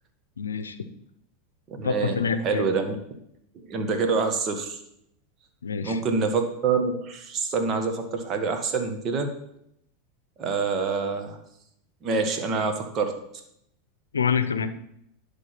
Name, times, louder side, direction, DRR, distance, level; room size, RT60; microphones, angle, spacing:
voice 1, 0.4-0.8 1.8-2.7 5.6-6.0 14.1-14.7, left 6 dB, 90° left, 12 dB, 0.6 m, -26 dB
voice 2, 1.7-3.0 3.5-4.8 5.8-9.4 10.4-11.4 12.0-13.2, right 4 dB, 40° right, 6 dB, 1.6 m, -26 dB
11.0 x 3.8 x 5.9 m, 0.75 s
hypercardioid pair, 95°, 0 cm